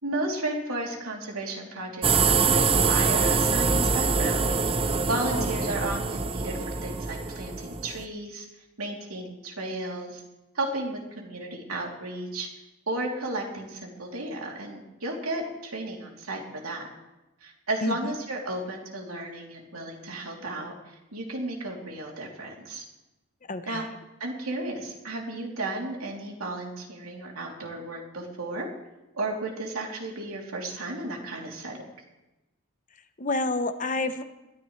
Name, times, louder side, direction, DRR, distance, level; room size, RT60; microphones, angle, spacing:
voice 1, 0.0-4.5 4.8-8.4 8.8-10.2 10.5-12.5 12.9-16.9 17.4-22.8 23.7-23.8 24.2-28.7 29.1-31.8, right 2 dB, 85° right, -1 dB, 3.1 m, -33 dB
sound 1, 2.0-8.0, right 4 dB, 25° right, 0.6 m, -24 dB
voice 2, 17.8-18.1 23.5-23.8 33.2-34.2, left 2 dB, 35° left, 9 dB, 0.9 m, -29 dB
21.0 x 13.5 x 3.3 m, 1.0 s
head